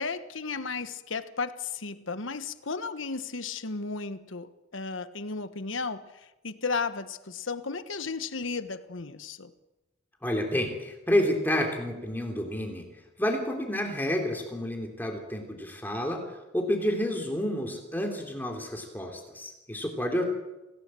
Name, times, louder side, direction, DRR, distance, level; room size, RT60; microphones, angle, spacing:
voice 1, 0.0-9.5, left 4 dB, 80° left, 1.2 m, -34 dB
voice 2, 10.2-12.8 13.2-16.2 16.5-20.2, left 1 dB, 10° left, 3.1 m, -29 dB
27.5 x 17.5 x 7.6 m
head